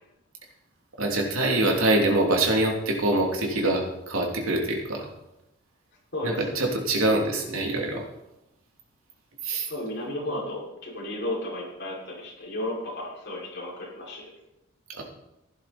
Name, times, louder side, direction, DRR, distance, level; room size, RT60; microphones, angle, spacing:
voice 1, 1.0-5.1 6.2-8.0 9.4-9.7 14.9-15.0, right 2 dB, 85° right, 1 dB, 2.9 m, -24 dB
voice 2, 6.1-6.7 9.7-14.2, left 1 dB, 50° left, -4 dB, 5.9 m, -33 dB
15.5 x 11.5 x 4.3 m, 0.88 s
head